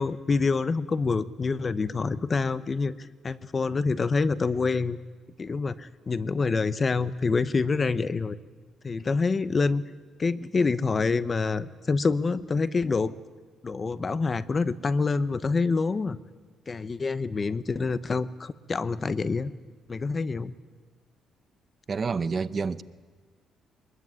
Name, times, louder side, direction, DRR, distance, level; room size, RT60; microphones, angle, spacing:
voice 1, 0.0-5.0 5.4-8.4 8.8-9.8 10.2-13.1 13.6-16.2 16.7-19.5 19.9-20.5, left 4 dB, 30° left, 0.9 m, -26 dB
voice 2, 21.9-22.8, right 5 dB, 35° right, 0.8 m, -28 dB
24.0 x 21.0 x 9.6 m
cardioid pair, 105°, 0 cm